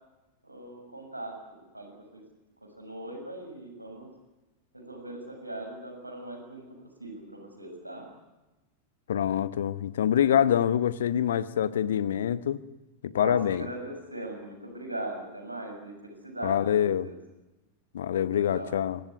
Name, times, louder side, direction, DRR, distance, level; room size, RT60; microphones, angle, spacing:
voice 1, 0.4-2.2 2.6-4.1 4.7-8.1 13.1-17.2 18.3-18.7, right 1 dB, 85° right, 3 dB, 6.8 m, -40 dB
voice 2, 9.1-12.6 13.0-13.7 16.4-17.1 17.9-19.0, left 9 dB, 60° left, 17 dB, 1.1 m, -25 dB
24.0 x 17.5 x 9.4 m, 1.0 s
figure-of-eight pair, 90°, 0 cm